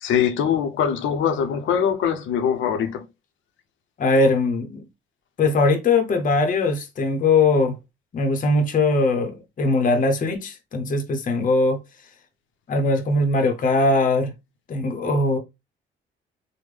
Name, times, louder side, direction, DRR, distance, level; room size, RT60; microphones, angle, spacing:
voice 1, 0.0-3.1, left 8 dB, 80° left, 0.7 m, -22 dB
voice 2, 4.0-4.9 5.4-7.7 8.1-11.8 12.7-14.3 14.7-15.4, left 2 dB, 40° left, 0.7 m, -20 dB
3.5 x 2.1 x 3.2 m
cardioid pair, 90°, 20 cm